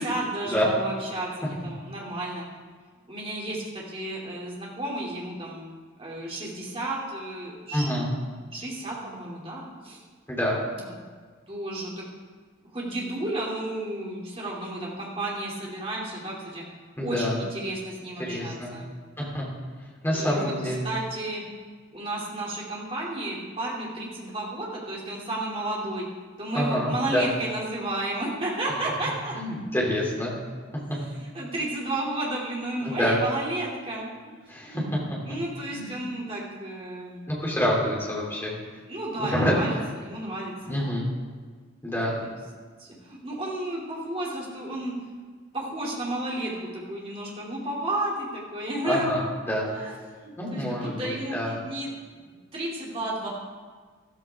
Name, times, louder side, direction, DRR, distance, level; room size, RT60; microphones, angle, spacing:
voice 1, 0.0-2.5 3.1-5.6 6.0-7.9 8.3-10.0 10.8-10.9 11.5-12.0 12.7-16.6 17.0-18.9 20.1-20.5 20.8-21.4 21.9-26.0 26.4-29.3 31.3-34.9 35.3-37.2 38.9-40.9 42.1-42.3 42.8-44.9 45.5-49.1 49.6-51.9 52.2-53.3, right 1 dB, 30° right, -5 dB, 2.8 m, -32 dB
voice 2, 7.7-8.1 10.3-10.6 17.0-17.4 18.2-18.7 19.2-19.4 20.0-20.8 26.5-27.3 29.3-30.3 32.8-33.2 34.5-35.0 35.7-36.0 37.3-38.5 39.2-39.6 40.7-41.0 41.8-42.2 48.8-49.7 50.4-51.6, equal, 10° left, -4 dB, 2.9 m, -27 dB
13.5 x 13.5 x 3.6 m, 1.5 s
head